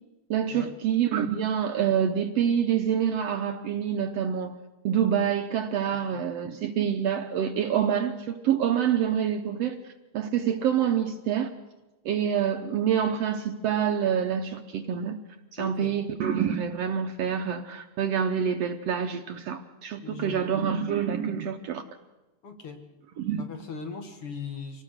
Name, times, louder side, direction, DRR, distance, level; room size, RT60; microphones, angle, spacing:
voice 1, 0.3-4.6 4.8-9.8 10.1-11.5 12.1-15.2 15.5-21.8 23.2-23.4, right 8 dB, 65° right, 7 dB, 1.7 m, -26 dB
voice 2, 15.6-15.9 20.0-20.7 22.4-22.9 23.4-24.8, left 5 dB, 50° left, 4 dB, 2.4 m, -39 dB
25.5 x 18.5 x 6.5 m, 1.1 s
omnidirectional pair, 3.5 m